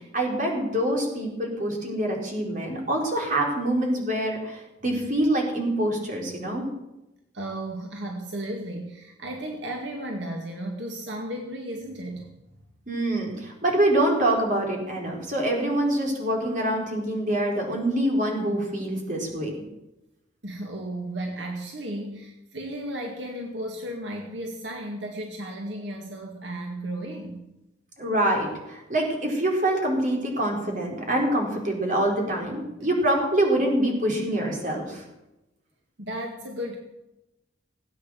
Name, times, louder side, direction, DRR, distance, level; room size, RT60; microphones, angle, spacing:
voice 1, 0.1-6.7 12.9-19.5 28.0-35.0, right 1 dB, 45° right, 0 dB, 4.6 m, -25 dB
voice 2, 7.3-12.3 20.4-27.4 36.0-36.8, right 1 dB, 75° right, 1 dB, 2.2 m, -34 dB
18.5 x 9.1 x 7.8 m, 0.93 s
head